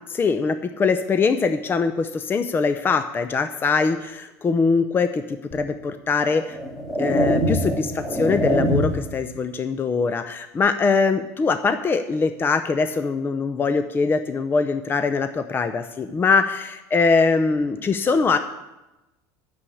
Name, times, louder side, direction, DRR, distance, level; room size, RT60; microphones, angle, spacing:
voice 1, 0.1-6.6 7.0-18.4, left 4 dB, 25° left, 9 dB, 0.6 m, -22 dB
sound 1, 5.5-5.7 6.4-9.2, equal, 5° left, 2.1 m, -23 dB
9.7 x 7.0 x 8.5 m, 1.0 s
supercardioid pair, 105°, 9 cm